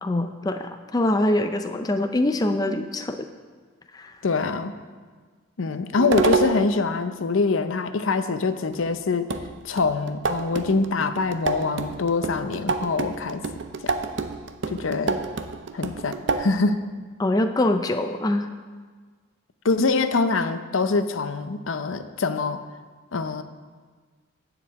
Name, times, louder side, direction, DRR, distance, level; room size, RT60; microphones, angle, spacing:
voice 1, 0.0-3.3 3.9-4.1 17.2-18.5, left 1 dB, 20° left, 6 dB, 0.4 m, -24 dB
voice 2, 4.2-4.7 5.6-9.3 9.6-13.4 13.8-13.9 14.7-15.2 15.7-16.8 19.6-22.6 23.1-23.4, left 4 dB, 75° left, 10 dB, 0.6 m, -24 dB
sound 1, 6.0-6.8 8.7-8.8 9.3-16.5, right 4 dB, 60° right, 0.5 m, -28 dB
10.5 x 5.0 x 8.2 m, 1.5 s
head